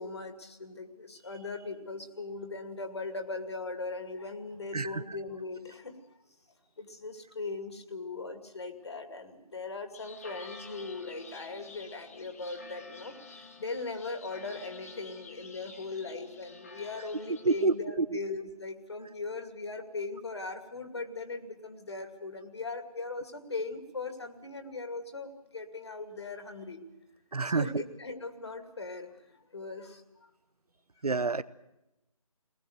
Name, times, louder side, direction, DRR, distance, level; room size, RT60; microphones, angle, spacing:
voice 1, 0.0-6.0 6.8-13.2 13.6-26.8 27.4-30.3, left 3 dB, 45° left, 7 dB, 2.4 m, -39 dB
sound 1, 9.9-17.7, left 4 dB, 25° left, 1.6 m, -50 dB
voice 2, 27.3-27.7 31.0-31.4, right 3 dB, 90° right, 16 dB, 1.1 m, -27 dB
22.0 x 19.5 x 8.0 m, 0.93 s
figure-of-eight pair, 170°, 19 cm